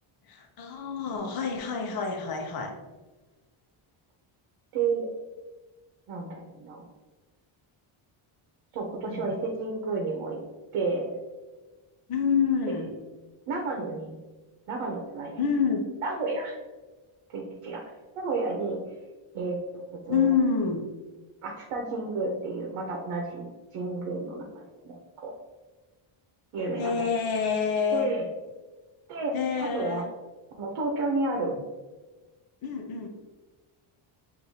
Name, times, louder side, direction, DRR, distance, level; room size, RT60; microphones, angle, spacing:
voice 1, 0.3-2.7 9.1-9.3 12.1-12.9 15.4-15.8 20.1-20.9 26.8-28.1 29.3-30.0 31.4-31.6 32.6-33.1, left 6 dB, 45° left, 2 dB, 0.8 m, -27 dB
voice 2, 4.7-5.1 6.1-6.8 8.7-10.4 10.7-11.1 13.5-14.2 14.7-15.4 16.0-16.6 17.3-17.8 18.2-18.8 19.3-20.3 21.4-23.5 23.7-25.3 26.5-26.9 27.9-28.3 29.1-30.0 30.5-31.6, right 3 dB, 75° right, 0 dB, 0.9 m, -31 dB
6.3 x 2.7 x 2.7 m, 1.2 s
cardioid pair, 140°, 50 cm